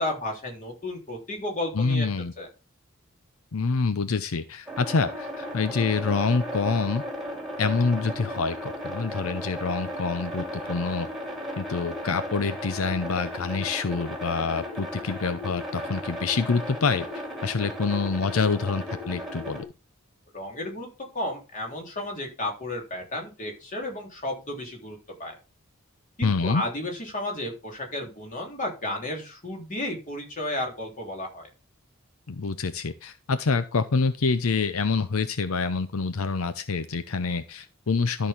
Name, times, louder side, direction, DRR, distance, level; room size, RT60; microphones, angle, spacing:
voice 1, 0.0-2.1 2.4-2.5 20.3-20.9 21.1-25.4 26.2-31.5, left 1 dB, 40° left, 1 dB, 3.4 m, -33 dB
voice 2, 1.7-2.3 3.5-7.0 7.6-11.1 11.6-17.1 17.4-19.6 26.2-26.6 32.3-38.3, left 4 dB, 85° left, 12 dB, 0.7 m, -26 dB
sound 1, 4.7-19.6, equal, ahead, 2.4 m, -35 dB
13.0 x 6.2 x 3.6 m, 0.29 s
head